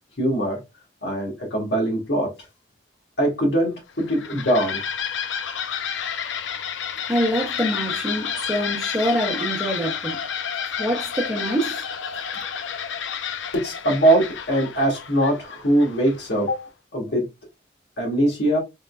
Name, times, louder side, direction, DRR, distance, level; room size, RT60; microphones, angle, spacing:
voice 1, 0.2-0.6 1.0-2.3 3.2-4.8 13.5-17.3 18.0-18.6, right 1 dB, 65° left, 1.6 m, -22 dB
sound 1, 3.9-16.4, left 7 dB, 85° left, 0.6 m, -30 dB
voice 2, 7.1-10.2 10.8-11.8 12.3-12.4, equal, 10° right, 0.9 m, -25 dB
3.7 x 3.5 x 2.3 m
head